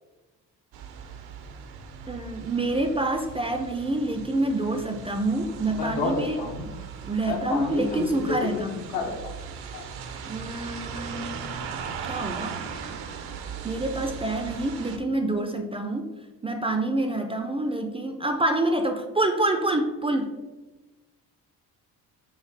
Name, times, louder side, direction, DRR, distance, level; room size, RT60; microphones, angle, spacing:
sound 1, 0.7-15.0, right 6 dB, 75° right, 0.6 m, -38 dB
voice 1, 2.1-6.4 7.0-8.8 10.2-11.4 12.1-12.6 13.6-16.1 16.4-20.4, right 2 dB, 15° right, 5 dB, 0.3 m, -27 dB
voice 2, 5.8-6.7 7.3-8.6 8.9-9.3 9.7-9.8, left 4 dB, 85° left, 0 dB, 1.0 m, -30 dB
4.9 x 2.4 x 3.2 m, 1.2 s
supercardioid pair, 75°, 39 cm